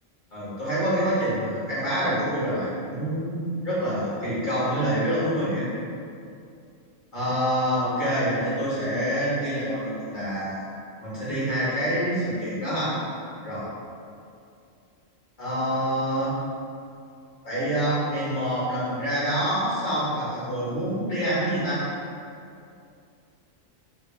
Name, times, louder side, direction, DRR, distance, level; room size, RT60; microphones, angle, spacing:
voice 1, 0.3-3.4 3.6-5.7 7.1-10.6 11.0-12.9 13.4-13.7 15.4-16.3 17.4-21.8, equal, 40° left, -11 dB, 1.3 m, -26 dB
3.5 x 2.3 x 3.2 m, 2.5 s
omnidirectional pair, 1.3 m